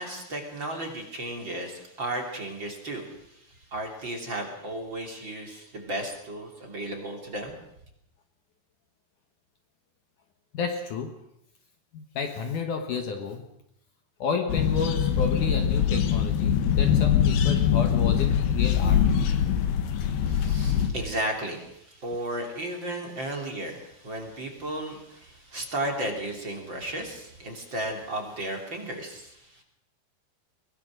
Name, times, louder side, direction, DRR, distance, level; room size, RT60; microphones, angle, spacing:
voice 1, 0.0-7.5 20.3-29.6, right 1 dB, 30° right, 2 dB, 3.3 m, -34 dB
voice 2, 10.5-11.2 11.9-13.5 14.2-19.1, left 5 dB, 60° left, 5 dB, 2.4 m, -31 dB
sound 1, 14.5-20.9, left 8 dB, 80° left, 3.6 m, -23 dB
22.5 x 21.0 x 6.4 m, 0.78 s
omnidirectional pair, 4.6 m